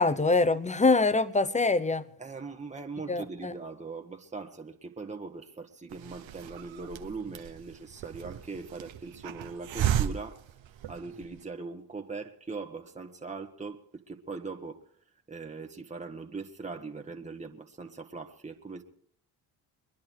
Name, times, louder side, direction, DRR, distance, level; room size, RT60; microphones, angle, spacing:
voice 1, 0.0-2.0 3.1-3.5, left 3 dB, 15° left, 1.0 m, -24 dB
voice 2, 2.2-10.4 10.9-14.8 15.3-18.8, right 4 dB, 15° right, 1.6 m, -40 dB
Hiss, 5.9-11.4, right 10 dB, 65° right, 1.2 m, -35 dB
23.5 x 10.5 x 4.7 m
supercardioid pair, 50°, 50 cm